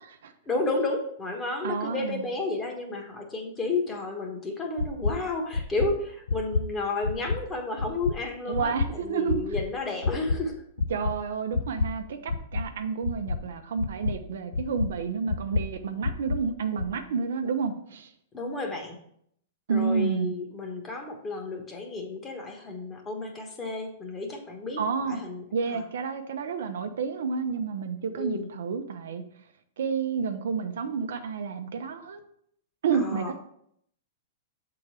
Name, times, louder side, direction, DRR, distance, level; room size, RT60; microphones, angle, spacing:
voice 1, 0.5-10.5 18.3-19.0 19.7-25.8 28.2-28.5 32.9-33.3, left 3 dB, 20° left, 2 dB, 1.3 m, -32 dB
voice 2, 1.6-2.2 8.5-9.4 10.9-18.1 19.7-20.4 24.8-25.2 25.5-29.2 29.8-32.2 32.8-33.4, right 5 dB, 80° right, 7 dB, 0.7 m, -30 dB
sound 1, 4.8-5.1 5.5-5.9 6.3-6.6 7.0-7.4 7.8-8.1 8.5-8.9 9.3-9.6 10.0-10.4 10.8-11.1 11.5-11.9 12.3-12.6 13.0-13.4 13.8-14.1 14.5-14.9 15.3-15.6 16.0-16.4 16.8-16.9, left 4 dB, 85° left, 0.5 m, -27 dB
7.2 x 3.9 x 4.7 m, 0.70 s
hypercardioid pair, 135°, 0 cm